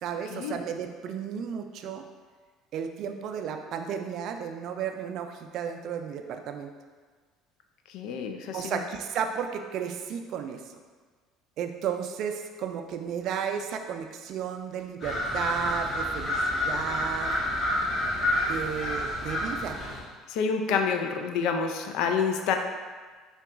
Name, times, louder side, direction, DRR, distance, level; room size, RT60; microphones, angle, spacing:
voice 1, 0.0-2.1 2.7-6.7 8.5-10.6 11.6-17.4 18.5-19.8, right 7 dB, 60° right, 6 dB, 0.3 m, -33 dB
voice 2, 7.9-8.8 20.3-22.6, left 6 dB, 70° left, 5 dB, 0.3 m, -28 dB
sound 1, 15.0-20.0, left 1 dB, 40° left, 1.4 m, -29 dB
3.8 x 2.3 x 3.5 m, 1.5 s
supercardioid pair, 80°, 0 cm